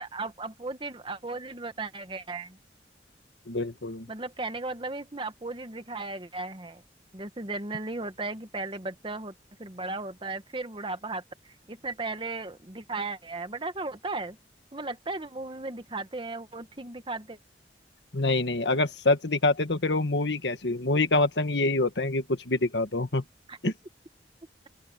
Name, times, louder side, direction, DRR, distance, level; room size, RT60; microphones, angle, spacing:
voice 1, 0.0-2.6 4.1-6.8 7.1-9.3 9.6-14.4 14.7-17.4 23.5-23.6, right 3 dB, 30° right, 1.3 m, -36 dB
voice 2, 3.5-4.1 18.1-23.2 23.6-23.7, left 2 dB, 80° left, 1.6 m, -26 dB
open air
head